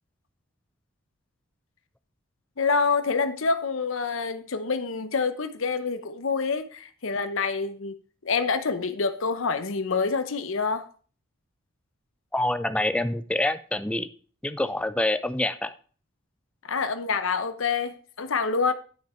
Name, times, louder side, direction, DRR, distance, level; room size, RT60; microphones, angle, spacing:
voice 1, 2.6-7.9 8.2-10.9 16.6-18.7, left 4 dB, 70° left, 0.8 m, -27 dB
voice 2, 12.3-14.1 14.4-15.7, left 1 dB, 5° left, 0.4 m, -26 dB
10.5 x 5.8 x 4.4 m
head